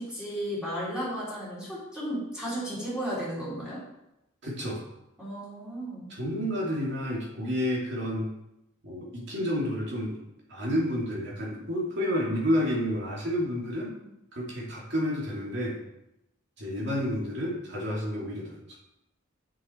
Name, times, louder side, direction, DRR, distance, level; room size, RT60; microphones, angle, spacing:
voice 1, 0.0-3.8 5.2-6.1, equal, 5° right, -9 dB, 3.7 m, -34 dB
voice 2, 4.4-4.8 6.1-8.3 8.8-10.2 10.5-13.9 14.3-15.8 16.6-18.6, equal, 60° right, -4 dB, 2.7 m, -30 dB
7.7 x 6.8 x 4.5 m, 0.87 s
head